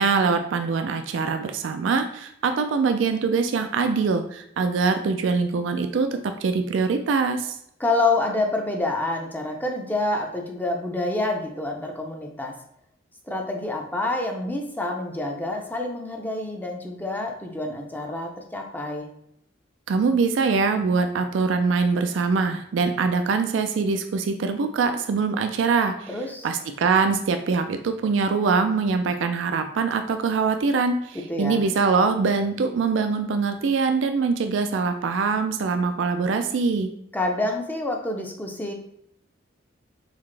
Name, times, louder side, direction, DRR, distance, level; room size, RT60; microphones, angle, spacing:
voice 1, 0.0-7.6 19.9-26.1 26.4-36.9, right 4 dB, 75° right, 7 dB, 0.4 m, -23 dB
voice 2, 7.8-12.6 13.3-19.1 26.1-26.5 31.1-31.6 37.1-38.7, left 2 dB, 10° left, 1 dB, 0.5 m, -27 dB
4.0 x 3.5 x 3.2 m, 0.73 s
head